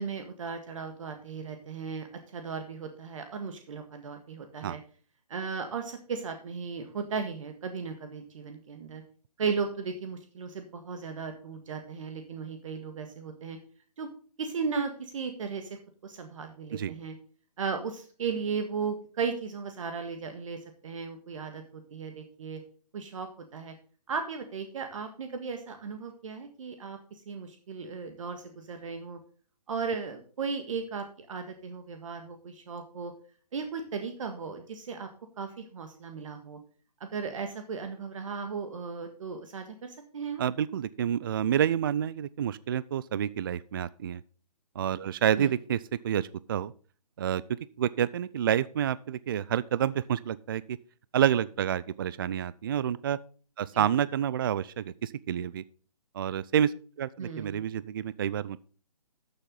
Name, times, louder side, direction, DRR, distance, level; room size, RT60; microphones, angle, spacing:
voice 1, 0.0-4.8 5.3-9.0 9.4-13.6 14.0-14.1 14.4-17.2 17.6-22.6 22.9-23.7 24.1-29.2 29.7-33.1 33.5-35.1 35.4-36.6 37.0-40.4 45.4-45.5 53.7-53.8 57.2-57.7, right 5 dB, 50° right, 6 dB, 1.7 m, -36 dB
voice 2, 40.4-44.2 44.8-46.7 47.2-47.4 47.8-50.8 51.1-53.2 53.6-55.6 56.1-58.6, right 9 dB, 35° right, 19 dB, 0.4 m, -29 dB
13.0 x 7.3 x 3.8 m, 0.40 s
hypercardioid pair, 150°, 20 cm